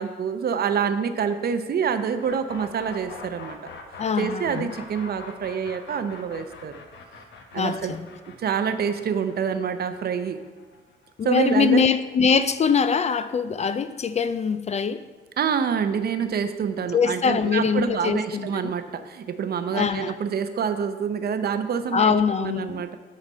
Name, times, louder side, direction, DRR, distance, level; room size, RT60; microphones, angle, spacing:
voice 1, 0.0-3.6 4.2-6.8 7.5-7.9 8.4-10.4 11.2-11.8 15.4-22.1 22.4-23.0, right 7 dB, 50° right, 10 dB, 0.6 m, -26 dB
sound 1, 2.2-12.0, left 4 dB, 65° left, 1.0 m, -43 dB
voice 2, 4.0-4.7 7.6-8.1 11.2-15.0 16.9-18.7 19.7-20.2 21.9-22.9, left 6 dB, 35° left, 13 dB, 0.4 m, -23 dB
9.0 x 4.1 x 5.4 m, 1.3 s
cardioid pair, 90°, 20 cm